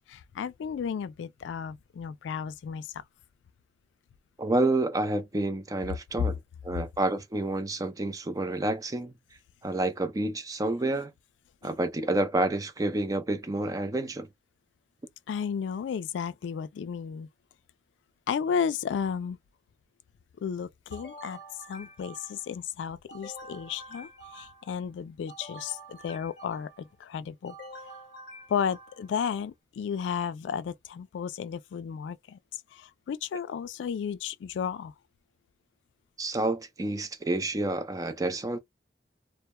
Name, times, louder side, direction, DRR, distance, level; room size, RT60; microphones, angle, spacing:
voice 1, 0.1-2.9 15.3-17.3 18.3-19.4 20.4-21.4 21.7-27.5 28.5-34.9, left 7 dB, 90° left, 0.3 m, -33 dB
voice 2, 4.4-6.3 6.6-9.1 9.6-11.1 11.6-14.3 36.2-38.6, right 2 dB, 20° right, 0.4 m, -29 dB
sound 1, 20.9-22.6 23.1-24.8 25.3-26.9 27.4-29.2, right 1 dB, 60° left, 0.8 m, -47 dB
2.2 x 2.0 x 2.9 m
head